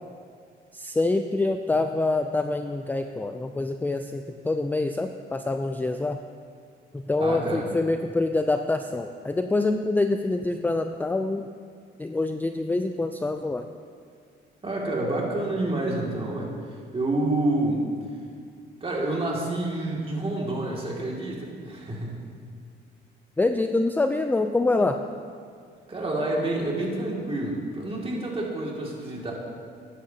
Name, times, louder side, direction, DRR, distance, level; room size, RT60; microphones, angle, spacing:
voice 1, 0.7-6.2 6.9-11.5 12.0-13.7 23.4-25.0, left 2 dB, 10° left, 6 dB, 0.3 m, -26 dB
voice 2, 7.2-7.7 14.6-16.5 16.9-17.9 18.8-22.2 25.9-29.3, right 2 dB, 30° right, -3 dB, 2.3 m, -28 dB
12.5 x 9.9 x 2.8 m, 2.2 s
cardioid pair, 90°, 20 cm